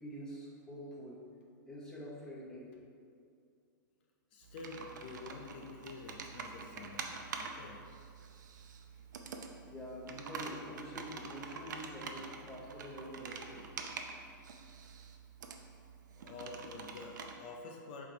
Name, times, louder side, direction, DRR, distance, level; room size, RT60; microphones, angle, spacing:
voice 1, 0.0-1.2 1.7-2.7 9.6-13.7, equal, 5° left, -5 dB, 0.8 m, -46 dB
voice 2, 4.3-7.8 16.1-18.1, left 3 dB, 30° left, 1 dB, 0.4 m, -48 dB
Computer keyboard, 4.4-17.4, right 5 dB, 65° right, 0.6 m, -46 dB
7.8 x 3.4 x 3.9 m, 2.3 s
hypercardioid pair, 175°, 11 cm